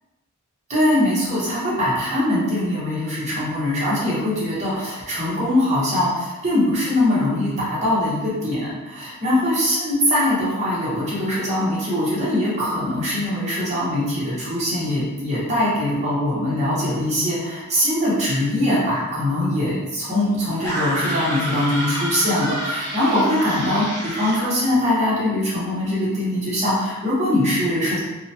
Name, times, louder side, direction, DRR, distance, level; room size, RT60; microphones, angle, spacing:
voice 1, 0.7-28.0, left 1 dB, 30° right, -8 dB, 0.9 m, -22 dB
sound 1, 20.6-24.5, equal, 10° left, 1.0 m, -28 dB
2.9 x 2.1 x 2.7 m, 1.1 s
head